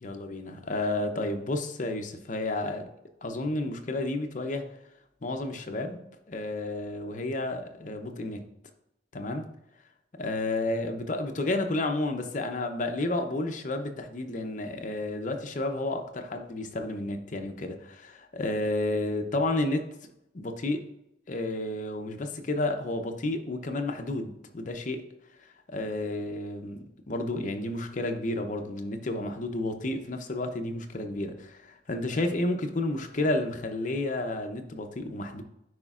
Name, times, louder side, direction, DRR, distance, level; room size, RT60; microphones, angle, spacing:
voice 1, 0.0-2.9 3.2-4.6 5.2-6.0 6.3-8.4 9.1-9.5 10.2-19.9 20.3-20.8 21.3-25.0 25.7-35.4, left 2 dB, 45° left, 5 dB, 0.6 m, -31 dB
9.4 x 4.9 x 2.4 m, 0.85 s
head